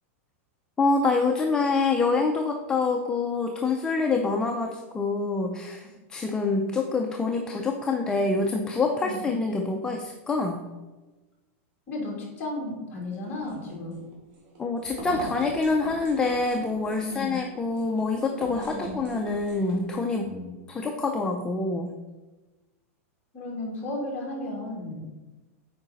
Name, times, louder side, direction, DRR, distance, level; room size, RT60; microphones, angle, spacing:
voice 1, 0.8-10.6 14.6-20.3 20.7-21.9, left 3 dB, 10° left, 2 dB, 0.4 m, -26 dB
voice 2, 9.0-9.4 11.9-14.0 17.0-17.4 17.8-17.9 18.7-19.0 20.1-20.6 23.3-25.1, left 1 dB, 25° left, -3 dB, 2.6 m, -34 dB
sound 1, 13.2-20.0, right 1 dB, 50° right, 2.4 m, -41 dB
8.6 x 4.9 x 4.0 m, 1.2 s
supercardioid pair, 165°, 8 cm